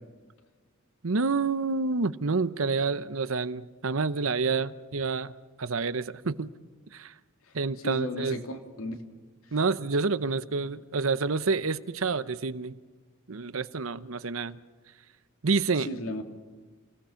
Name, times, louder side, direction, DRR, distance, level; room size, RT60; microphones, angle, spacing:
voice 1, 1.0-6.5 6.9-7.1 7.5-8.4 9.5-12.7 13.3-14.6 15.4-15.9, right 4 dB, 80° right, 14 dB, 0.9 m, -28 dB
voice 2, 7.8-9.0 15.8-16.2, left 1 dB, 85° left, 4 dB, 2.8 m, -34 dB
29.5 x 18.0 x 5.9 m, 1.4 s
head